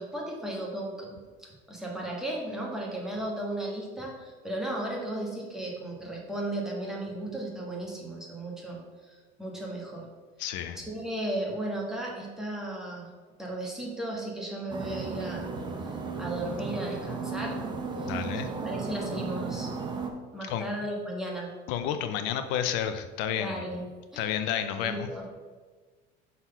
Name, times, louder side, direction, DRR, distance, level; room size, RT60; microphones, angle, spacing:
voice 1, 0.0-10.1 10.7-13.1 13.4-15.5 16.2-17.6 18.0-19.7 20.3-21.5 23.3-23.8 24.1-24.3 24.8-25.2, right 1 dB, ahead, -2 dB, 1.4 m, -35 dB
voice 2, 10.4-10.8 18.1-18.5 20.5-20.6 21.7-23.7 24.2-25.1, left 9 dB, 70° left, 9 dB, 0.5 m, -30 dB
sound 1, 14.7-20.1, right 4 dB, 20° right, 0.8 m, -35 dB
6.1 x 4.0 x 5.5 m, 1.4 s
cardioid pair, 135°, 21 cm